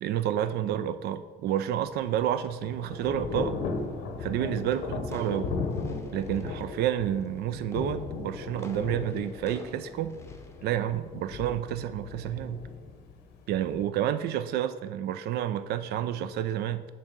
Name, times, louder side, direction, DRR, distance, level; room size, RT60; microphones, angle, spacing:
voice 1, 0.0-3.6 4.2-5.5 6.1-10.2 10.6-12.6 13.5-16.9, right 10 dB, 70° right, 13 dB, 0.4 m, -30 dB
Thunder / Rain, 1.9-13.8, left 4 dB, 85° left, 0.8 m, -37 dB
sound 1, 3.7-10.8, left 2 dB, 15° left, 0.6 m, -50 dB
7.4 x 2.8 x 5.1 m, 1.4 s
cardioid pair, 110°, 17 cm